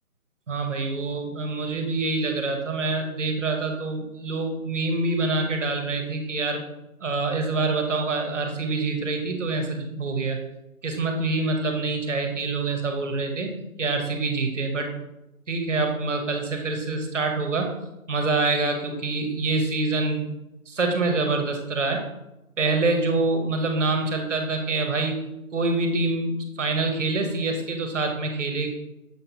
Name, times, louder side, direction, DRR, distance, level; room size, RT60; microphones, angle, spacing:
voice 1, 0.5-6.6 7.0-10.4 10.8-14.9 15.5-17.7 18.1-20.3 20.7-22.0 22.6-25.1 25.5-28.7, right 3 dB, 55° right, 4 dB, 0.8 m, -26 dB
6.4 x 2.8 x 2.7 m, 0.94 s
hypercardioid pair, 175°, 44 cm